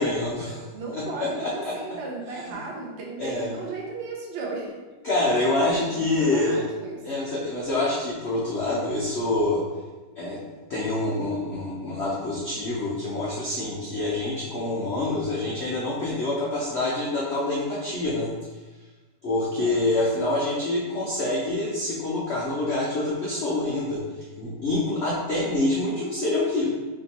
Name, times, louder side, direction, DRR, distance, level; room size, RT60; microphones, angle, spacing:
voice 1, 0.0-1.7 2.5-2.6 3.2-3.5 5.0-6.6 7.0-9.6 10.2-10.4 10.7-18.3 19.2-26.7, left 2 dB, 65° left, -6 dB, 0.6 m, -26 dB
voice 2, 0.7-4.8 5.8-7.0 19.6-19.8 24.8-24.9, right 3 dB, 55° right, -2 dB, 0.7 m, -35 dB
3.4 x 2.7 x 4.1 m, 1.2 s
omnidirectional pair, 2.0 m